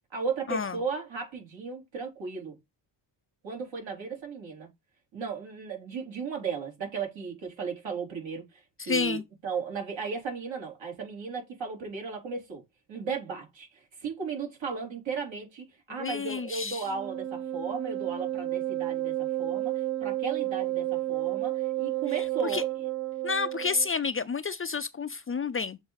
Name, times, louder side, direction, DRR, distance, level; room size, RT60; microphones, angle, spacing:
voice 1, 0.1-2.6 3.4-4.7 5.1-12.6 12.9-22.7, right 5 dB, 75° right, 3.7 m, -35 dB
voice 2, 8.8-9.2 16.0-16.8 22.4-22.6 23.2-25.8, left 5 dB, 30° left, 0.4 m, -30 dB
Wind instrument woodwind instrument, 16.9-23.9, right 15 dB, 40° right, 0.7 m, -31 dB
7.1 x 3.4 x 3.9 m
cardioid pair, 85°, 46 cm